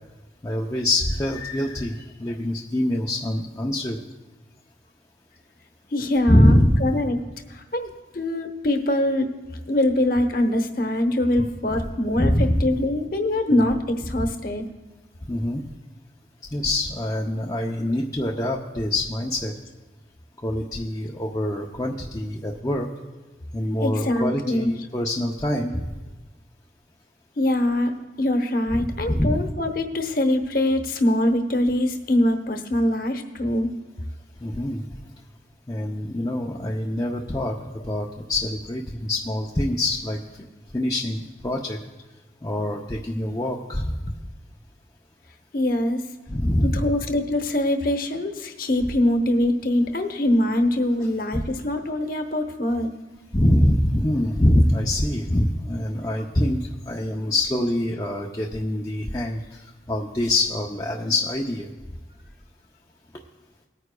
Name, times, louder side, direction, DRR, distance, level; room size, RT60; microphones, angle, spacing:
voice 1, 0.4-4.0 6.3-6.8 11.7-11.8 12.2-12.7 13.5-13.6 15.3-15.6 16.5-19.5 20.4-22.9 23.5-25.9 29.1-29.4 34.4-34.8 35.7-40.2 40.7-41.8 42.4-44.1 46.3-46.9 51.3-51.4 53.3-56.6 56.9-61.7, left 1 dB, 20° left, -3 dB, 0.5 m, -24 dB
voice 2, 5.9-7.2 7.5-9.3 9.7-14.6 23.8-24.7 27.4-27.9 28.2-33.7 45.5-46.1 46.6-52.9, left 1 dB, 50° left, 5 dB, 1.0 m, -23 dB
19.5 x 9.4 x 2.3 m, 1.2 s
head